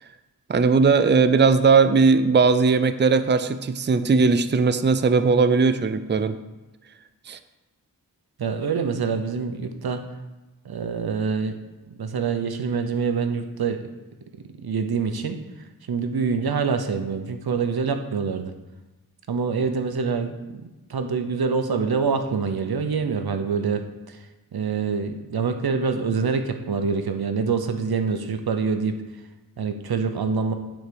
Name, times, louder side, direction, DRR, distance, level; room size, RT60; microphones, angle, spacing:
voice 1, 0.5-6.4 7.3-7.4, right 4 dB, 30° right, 11 dB, 0.5 m, -18 dB
voice 2, 8.4-10.0 10.6-11.6 12.0-13.8 14.6-15.4 15.9-18.5 19.3-20.6 20.9-24.2 24.5-29.0 29.6-30.5, right 5 dB, 85° right, 7 dB, 0.9 m, -25 dB
9.3 x 4.8 x 6.9 m, 1.1 s
wide cardioid pair, 75°, 36 cm